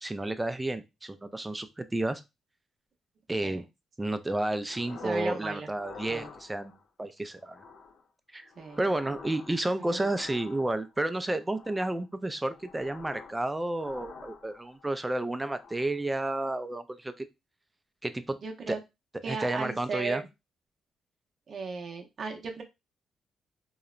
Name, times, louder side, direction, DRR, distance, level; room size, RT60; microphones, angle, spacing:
voice 1, 0.0-2.2 3.3-3.6 4.0-6.7 7.0-7.6 8.3-8.5 8.8-17.3 18.0-18.4 18.7-18.8 19.3-20.2, right 1 dB, 15° right, 10 dB, 0.3 m, -31 dB
sound 1, 4.7-5.4 5.7-6.8 7.4-8.0 8.4-10.9 11.4-12.0 12.4-13.4 13.7-14.9 15.3-16.0, left 5 dB, 70° left, 0.4 m, -48 dB
voice 2, 5.0-5.7 6.1-6.3 8.6-8.8 9.8-10.1 18.4-18.8 19.2-20.3 21.5-22.6, right 4 dB, 50° right, 3 dB, 0.6 m, -36 dB
2.8 x 2.0 x 2.3 m, 0.23 s
cardioid pair, 100°, 0 cm